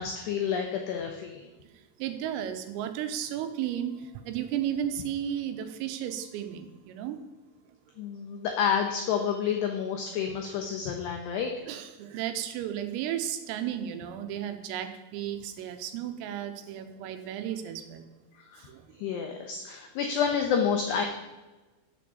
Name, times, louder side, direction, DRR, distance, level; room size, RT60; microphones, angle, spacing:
voice 1, 0.0-1.4 8.0-11.5 18.5-18.7 19.0-21.0, left 7 dB, 85° left, 3 dB, 2.3 m, -29 dB
voice 2, 2.0-7.2 11.7-18.1 18.7-18.9, right 10 dB, 90° right, 8 dB, 3.5 m, -34 dB
8.5 x 7.8 x 7.0 m, 1.1 s
omnidirectional pair, 5.9 m